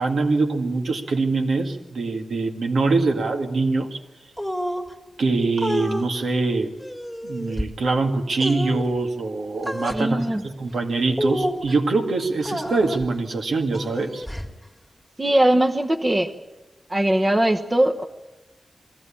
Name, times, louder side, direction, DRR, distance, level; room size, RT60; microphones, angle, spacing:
voice 1, 0.0-4.0 5.2-6.7 7.2-14.3, right 3 dB, 80° right, 3 dB, 2.0 m, -23 dB
sound 1, 4.4-4.9 5.6-6.1 6.8-7.6 8.4-8.8 9.6-10.0 11.1-11.7 12.4-13.1 13.7-14.5, equal, 5° right, 2.3 m, -28 dB
voice 2, 9.9-10.4 15.2-16.3 16.9-18.0, right 1 dB, 20° right, 5 dB, 1.0 m, -20 dB
22.0 x 15.5 x 8.6 m, 1.1 s
wide cardioid pair, 115°, 0 cm